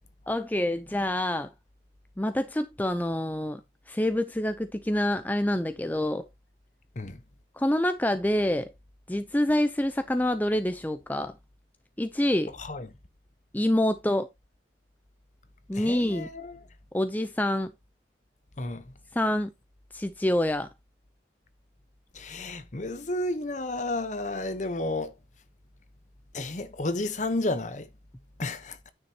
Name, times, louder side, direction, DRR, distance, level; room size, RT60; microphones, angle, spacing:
voice 1, 0.3-1.5 2.2-3.6 3.9-6.3 7.5-8.7 9.1-11.3 12.0-12.5 13.5-14.3 15.7-16.3 16.9-17.7 19.1-19.5 19.9-20.7, left 1 dB, 10° left, 0.5 m, -26 dB
voice 2, 15.7-16.6 18.6-18.9 22.1-25.1 26.3-27.9 28.4-28.9, left 2 dB, 40° left, 0.9 m, -32 dB
9.7 x 6.9 x 2.9 m
head